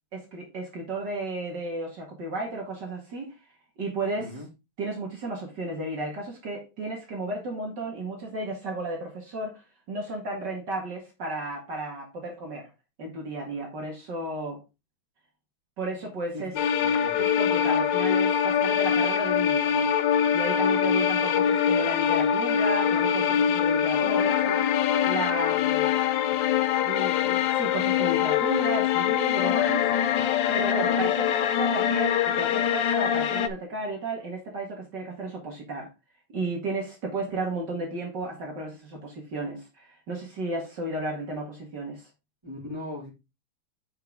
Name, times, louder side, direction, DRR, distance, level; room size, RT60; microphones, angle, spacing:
voice 1, 0.1-3.3 3.8-4.4 4.8-9.6 9.9-12.7 13.0-14.6 15.8-16.6 17.2-19.9 20.3-24.7 25.0-25.9 26.8-29.9 30.5-35.9 36.3-42.1, right 2 dB, 55° right, 2.5 m, -33 dB
sound 1, 16.6-33.5, left 9 dB, 70° left, 1.4 m, -24 dB
voice 2, 16.7-17.2 42.4-43.1, left 1 dB, 10° right, 3.3 m, -38 dB
8.1 x 5.5 x 3.9 m
omnidirectional pair, 2.2 m